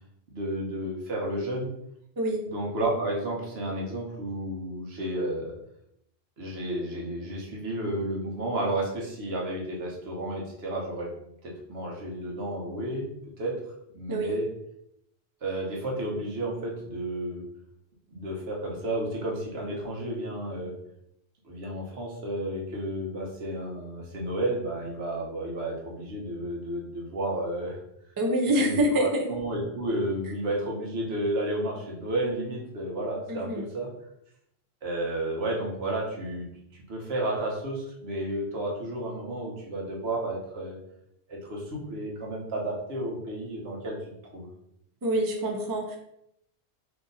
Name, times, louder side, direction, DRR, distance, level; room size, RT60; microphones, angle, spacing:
voice 1, 0.3-1.7 2.5-5.5 6.4-11.1 11.4-13.1 13.4-13.6 13.9-14.5 15.4-17.4 18.1-20.7 21.4-27.8 28.5-33.9 34.8-36.5 36.7-40.8 41.3-44.0 44.3-44.5, right 1 dB, 75° right, -2 dB, 1.2 m, -32 dB
voice 2, 28.2-29.2 33.3-33.6 45.0-46.0, right 1 dB, 35° right, 1 dB, 0.3 m, -26 dB
2.8 x 2.5 x 3.9 m, 0.77 s
omnidirectional pair, 1.1 m